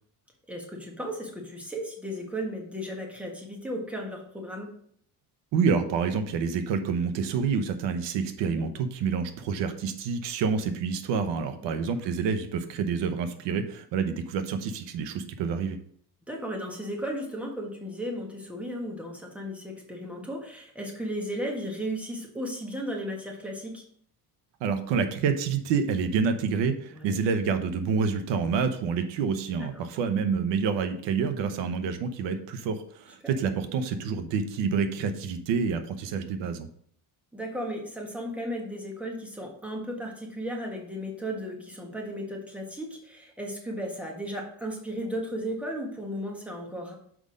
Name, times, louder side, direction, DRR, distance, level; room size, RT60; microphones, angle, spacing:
voice 1, 0.5-4.7 8.4-8.7 11.6-11.8 16.3-23.8 26.9-27.2 33.2-33.3 37.3-46.9, equal, 5° right, 0 dB, 1.5 m, -35 dB
voice 2, 5.5-15.8 24.6-36.7, right 5 dB, 90° right, 9 dB, 1.0 m, -28 dB
6.3 x 5.2 x 4.9 m, 0.62 s
cardioid pair, 160°, 42 cm